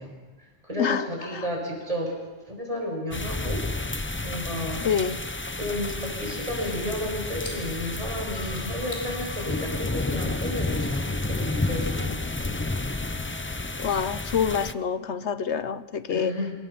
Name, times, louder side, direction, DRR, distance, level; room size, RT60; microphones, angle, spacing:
voice 1, 0.0-2.2 2.5-3.6 4.2-4.9 5.6-12.6 16.1-16.5, left 1 dB, 30° right, -1 dB, 6.8 m, -32 dB
voice 2, 0.8-1.5 4.8-5.2 9.8-9.9 13.8-16.3, left 7 dB, 70° left, 13 dB, 1.2 m, -27 dB
sound 1, 3.1-14.7, left 2 dB, 15° left, 0.5 m, -31 dB
sound 2, 7.3-8.0 8.4-9.1 9.4-10.7 11.0-13.6, left 1 dB, 45° left, 5.3 m, -47 dB
sound 3, 8.3-14.4, left 1 dB, 60° right, 2.6 m, -50 dB
26.5 x 21.0 x 6.0 m, 1.3 s
omnidirectional pair, 1.2 m